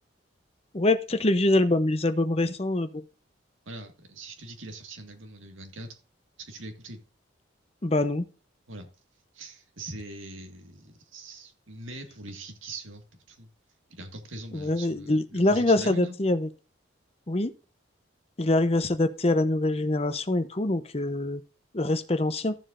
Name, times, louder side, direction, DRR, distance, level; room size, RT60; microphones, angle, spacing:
voice 1, 0.7-3.0 7.8-8.2 14.5-16.5 17.3-17.5 18.4-21.4 21.7-22.6, left 2 dB, 30° left, 10 dB, 0.7 m, -24 dB
voice 2, 3.7-6.0 6.4-7.0 8.7-8.9 9.3-13.5 13.9-16.2, right 2 dB, 80° right, 5 dB, 1.9 m, -42 dB
14.5 x 7.2 x 2.6 m, 0.36 s
head